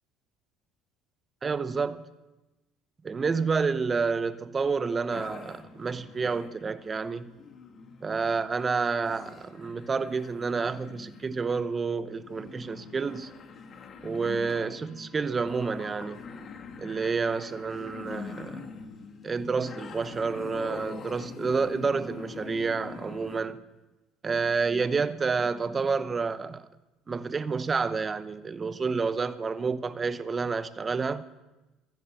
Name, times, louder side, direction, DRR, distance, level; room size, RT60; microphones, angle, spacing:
voice 1, 1.4-2.0 3.0-7.3 8.0-13.3 14.0-16.3 16.8-18.7 19.2-23.6 24.2-26.7 27.1-31.2, right 4 dB, 30° right, 0.8 m, -29 dB
sound 1, 5.1-23.4, left 5 dB, 45° left, 1.5 m, -44 dB
14.5 x 10.5 x 7.1 m
supercardioid pair, 85°, 0 cm